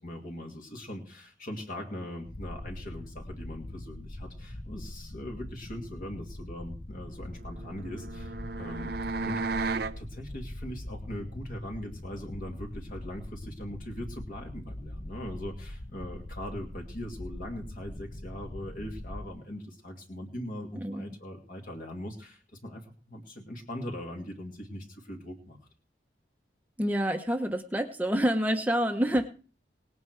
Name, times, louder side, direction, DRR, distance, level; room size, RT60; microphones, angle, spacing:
voice 1, 0.0-8.9 9.2-9.5 10.0-22.8 23.1-25.6, left 1 dB, 45° left, 0 dB, 2.4 m, -41 dB
sound 1, 2.2-19.3, left 1 dB, 30° left, 0.7 m, -42 dB
sound 2, 7.4-10.0, right 3 dB, 60° right, 0.6 m, -34 dB
voice 2, 26.8-29.3, equal, 10° right, 5 dB, 1.0 m, -27 dB
19.0 x 9.2 x 4.6 m, 0.38 s
head